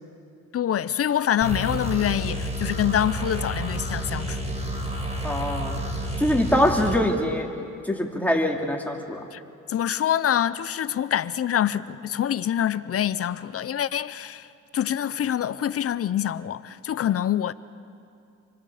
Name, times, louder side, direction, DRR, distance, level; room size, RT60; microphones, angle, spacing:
voice 1, 0.5-4.4 9.3-9.4 9.7-14.5 14.7-17.5, left 10 dB, 50° left, 0.7 m, -25 dB
sound 1, 1.4-7.0, right 1 dB, 20° right, 4.3 m, -30 dB
voice 2, 5.2-5.8 6.2-9.3, left 1 dB, 5° left, 3.1 m, -24 dB
28.5 x 24.0 x 5.1 m
cardioid pair, 90°, 30 cm